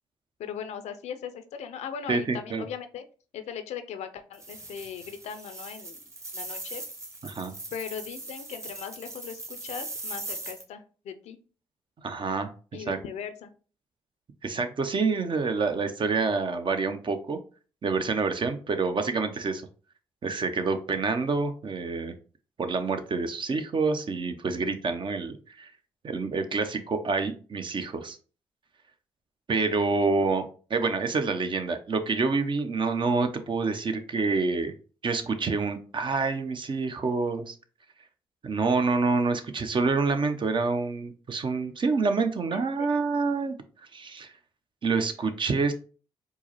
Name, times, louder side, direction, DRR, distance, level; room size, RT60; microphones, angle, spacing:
voice 1, 0.4-3.0 3.3-6.0 6.3-6.8 7.7-11.4 12.7-13.5 42.5-42.9, left 8 dB, 70° left, 9 dB, 0.5 m, -39 dB
voice 2, 2.1-2.6 7.2-7.5 12.0-12.5 12.9-13.0 14.4-17.4 17.8-19.7 20.2-22.1 22.6-25.7 26.0-28.2 29.5-34.7 35.0-37.5 38.4-43.5 43.9-44.3 44.8-45.7, right 4 dB, 45° right, 8 dB, 0.6 m, -27 dB
sound 1, 4.3-10.6, right 2 dB, 25° right, 1.1 m, -40 dB
4.5 x 2.0 x 2.9 m, 0.38 s
supercardioid pair, 50°, 12 cm